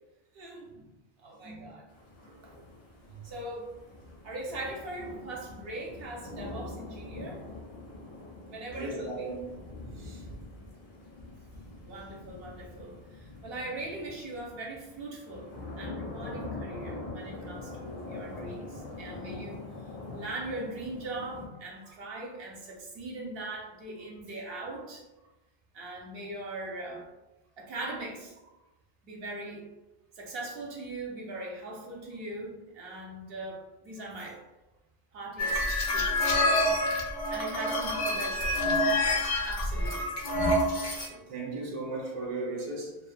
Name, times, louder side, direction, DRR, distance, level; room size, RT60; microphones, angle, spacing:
voice 1, 0.3-0.9 1.2-1.8 2.4-2.5 3.1-3.7 4.2-7.5 8.5-9.3 11.8-15.5 15.8-19.7 20.1-25.0 25.7-27.1 27.6-28.4 29.0-29.7 30.2-34.4 35.1-36.7 37.3-40.2, right 2 dB, 70° right, 0.8 m, -40 dB
sound 1, 1.9-21.5, left 2 dB, 70° left, 0.9 m, -44 dB
voice 2, 8.7-9.6 10.0-10.2 41.1-43.0, right 2 dB, 40° right, 0.5 m, -36 dB
sound 2, 35.4-41.1, left 1 dB, 55° left, 0.5 m, -27 dB
2.5 x 2.0 x 2.4 m
omnidirectional pair, 1.1 m